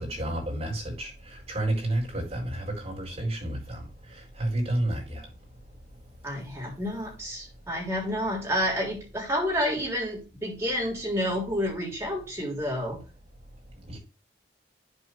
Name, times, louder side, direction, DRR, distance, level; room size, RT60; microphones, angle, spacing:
voice 1, 0.0-6.5 7.5-7.6 13.6-14.0, right 1 dB, 35° right, 4.5 m, -32 dB
voice 2, 6.2-13.0, equal, 15° right, 3.5 m, -29 dB
11.5 x 4.4 x 3.3 m
head